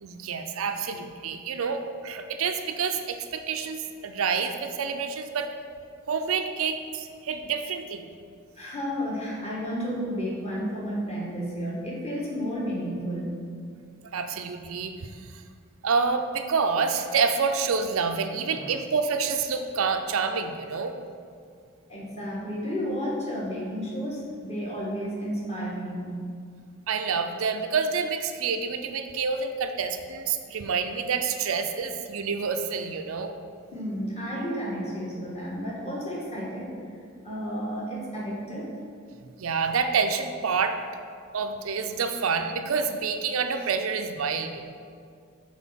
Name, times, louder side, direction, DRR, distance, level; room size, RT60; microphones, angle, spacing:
voice 1, 0.0-5.5 6.1-8.0 14.1-15.1 15.8-21.0 26.9-33.3 39.4-40.8 41.3-44.6, right 5 dB, 90° right, 7 dB, 0.5 m, -28 dB
voice 2, 8.6-13.4 18.5-18.7 21.9-26.1 33.7-36.7 37.2-38.7, equal, 30° left, -5 dB, 1.5 m, -32 dB
6.2 x 4.2 x 5.7 m, 2.2 s
head